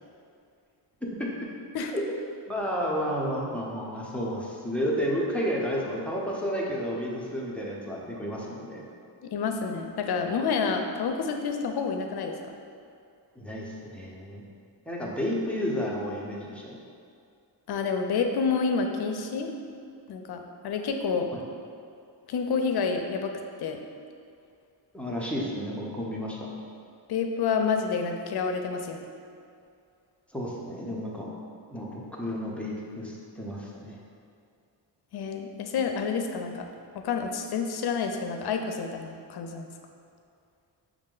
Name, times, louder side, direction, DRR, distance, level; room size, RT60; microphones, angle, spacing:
voice 1, 2.5-8.9 13.4-14.4 14.9-16.8 21.3-21.4 24.9-26.5 30.3-31.3 31.7-34.0, equal, 5° left, -4 dB, 0.6 m, -31 dB
voice 2, 9.2-12.4 17.7-19.5 20.1-21.3 22.3-23.3 23.6-23.8 27.1-29.1 35.1-36.7 36.9-39.7, left 5 dB, 65° left, 4 dB, 0.5 m, -29 dB
5.9 x 2.1 x 3.7 m, 2.4 s
wide cardioid pair, 100°, 42 cm